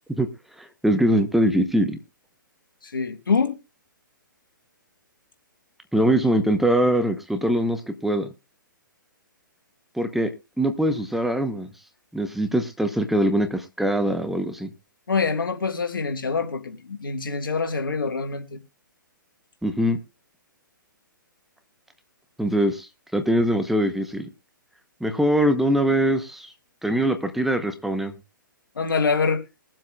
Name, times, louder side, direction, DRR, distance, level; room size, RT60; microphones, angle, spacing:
voice 1, 0.6-2.0 5.9-8.3 9.9-10.3 10.6-11.7 12.1-14.7 19.6-20.0 22.4-24.3 25.0-26.5 26.8-28.1, right 1 dB, ahead, 0.9 m, -22 dB
voice 2, 2.8-3.6 15.1-18.6 28.7-29.4, left 5 dB, 75° left, 1.7 m, -25 dB
22.0 x 7.6 x 2.4 m
figure-of-eight pair, 125°, 11 cm